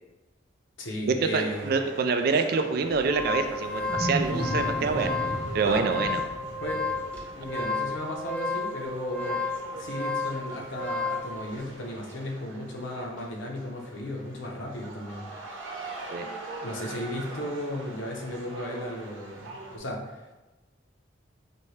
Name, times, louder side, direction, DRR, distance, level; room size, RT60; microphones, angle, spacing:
voice 1, 0.8-1.7 5.6-6.0 6.6-7.0 7.3-15.3 15.7-16.2 16.6-20.4, left 1 dB, 90° left, 0 dB, 0.8 m, -35 dB
voice 2, 1.3-5.1 5.5-6.2 16.1-16.3, right 4 dB, 55° right, 7 dB, 0.3 m, -26 dB
sound 1, 1.3-19.8, right 2 dB, 90° right, 0.8 m, -43 dB
sound 2, 2.8-11.3, left 3 dB, 5° left, 0.4 m, -32 dB
Wild animals, 2.9-7.9, equal, 35° left, 0.9 m, -35 dB
4.3 x 2.7 x 3.2 m, 1.1 s
head